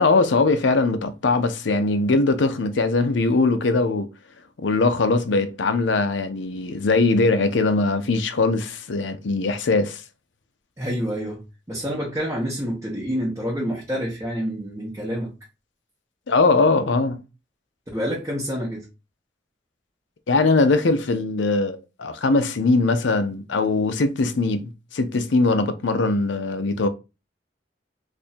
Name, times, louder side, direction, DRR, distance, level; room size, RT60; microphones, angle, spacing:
voice 1, 0.0-4.1 4.6-10.0 16.3-17.2 20.3-26.9, left 3 dB, 80° left, 0.6 m, -21 dB
voice 2, 10.8-11.4 11.7-15.3 17.9-18.9, equal, 15° right, 1.1 m, -27 dB
2.7 x 2.5 x 4.2 m
head